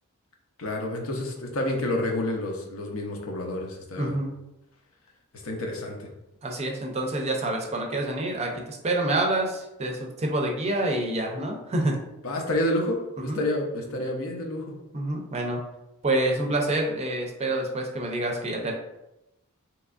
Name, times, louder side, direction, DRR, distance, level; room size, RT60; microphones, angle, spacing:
voice 1, 0.6-4.1 5.4-6.1 12.2-14.7, left 1 dB, 65° left, 1 dB, 0.6 m, -29 dB
voice 2, 4.0-4.3 6.4-11.9 13.3-13.4 14.9-15.6 16.0-18.7, right 1 dB, 30° right, 1 dB, 0.5 m, -27 dB
3.4 x 3.0 x 2.4 m, 0.91 s
head